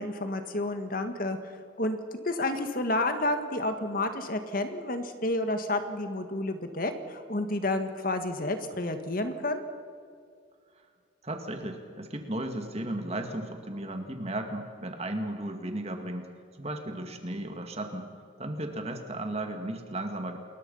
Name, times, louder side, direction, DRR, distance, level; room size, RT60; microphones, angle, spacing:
voice 1, 0.0-1.4 1.8-2.0 2.2-9.6, left 2 dB, 45° left, 7 dB, 1.8 m, -30 dB
voice 2, 11.2-16.3 16.6-18.1 18.4-20.4, right 1 dB, 30° right, 5 dB, 2.2 m, -35 dB
28.5 x 21.5 x 5.7 m, 2.2 s
head